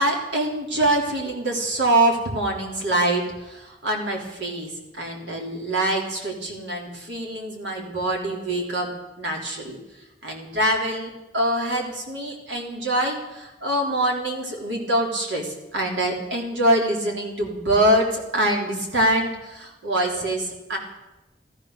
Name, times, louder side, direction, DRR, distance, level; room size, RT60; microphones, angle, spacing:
voice 1, 0.0-8.9 9.2-9.8 10.2-20.8, right 1 dB, 80° right, 0 dB, 3.5 m, -24 dB
14.5 x 13.5 x 6.6 m, 0.99 s
head